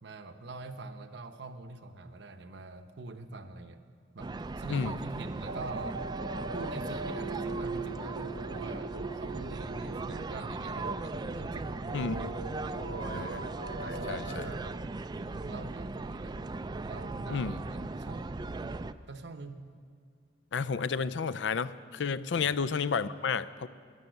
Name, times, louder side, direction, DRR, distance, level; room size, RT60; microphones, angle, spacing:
voice 1, 0.0-3.8 4.1-6.0 6.5-12.8 13.1-13.4 13.8-14.8 15.2-16.5 16.8-18.4 19.1-19.7 22.3-22.6, right 3 dB, 65° right, 9 dB, 0.8 m, -45 dB
sound 1, 4.2-18.9, right 3 dB, 20° right, 0.3 m, -38 dB
sound 2, 5.5-14.2, right 3 dB, 90° right, 0.7 m, -40 dB
voice 2, 11.9-12.3 13.0-13.4 14.1-14.5 17.3-17.5 20.5-23.7, left 5 dB, 65° left, 14 dB, 0.4 m, -31 dB
12.5 x 10.5 x 7.9 m, 2.1 s
head